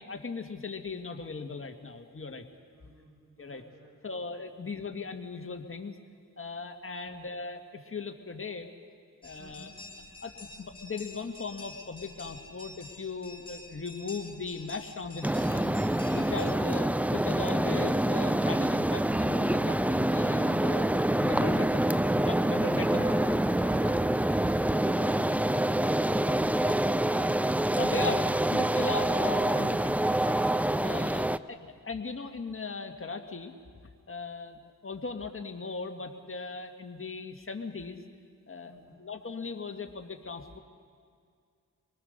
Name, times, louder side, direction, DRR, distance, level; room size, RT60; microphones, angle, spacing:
voice 1, 0.0-2.4 3.4-3.6 4.0-5.9 6.4-8.7 9.2-9.7 10.2-15.8 16.1-20.9 21.2-23.1 27.8-30.4 30.8-33.5 34.1-38.0 38.5-38.7 39.0-40.6, left 4 dB, 40° left, 5 dB, 1.8 m, -38 dB
voice 2, 2.7-4.2 4.5-4.8 7.0-7.1 9.4-9.9 22.8-24.1 38.7-39.1, right 1 dB, 75° right, -2 dB, 5.3 m, -49 dB
sound 1, 9.2-16.5, left 3 dB, 15° left, 2.7 m, -48 dB
sound 2, 15.2-31.4, right 1 dB, 5° right, 0.5 m, -26 dB
25.5 x 19.5 x 6.7 m, 2.2 s
cardioid pair, 60°, 33 cm